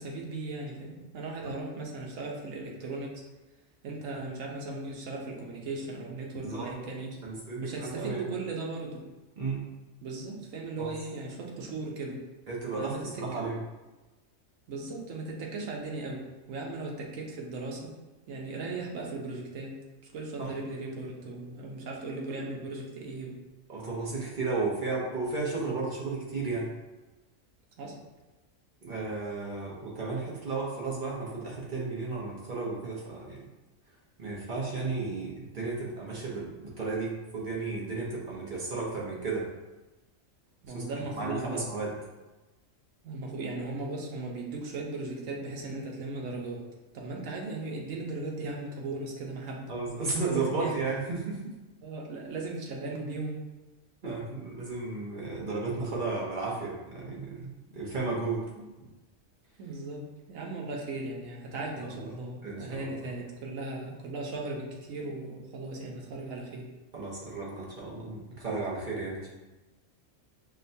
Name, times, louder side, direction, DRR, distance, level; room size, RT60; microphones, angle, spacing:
voice 1, 0.0-3.2 3.8-7.2 7.6-9.0 10.0-12.2 12.8-13.5 14.7-17.9 18.3-19.8 20.1-23.4 27.8-28.0 40.6-41.7 43.0-46.6 46.9-49.7 50.3-50.8 51.8-53.4 58.6-58.9 59.6-66.7, right 2 dB, 85° right, -1 dB, 1.2 m, -37 dB
voice 2, 7.2-8.3 9.4-9.6 10.8-10.9 12.5-13.6 20.4-20.5 23.7-26.7 28.8-33.4 34.2-39.5 40.7-40.8 41.2-41.9 49.7-51.5 54.0-58.4 61.8-62.1 62.4-62.9 66.9-69.3, right 3 dB, 45° right, -4 dB, 0.8 m, -33 dB
6.1 x 2.1 x 2.6 m, 1.1 s
omnidirectional pair, 1.3 m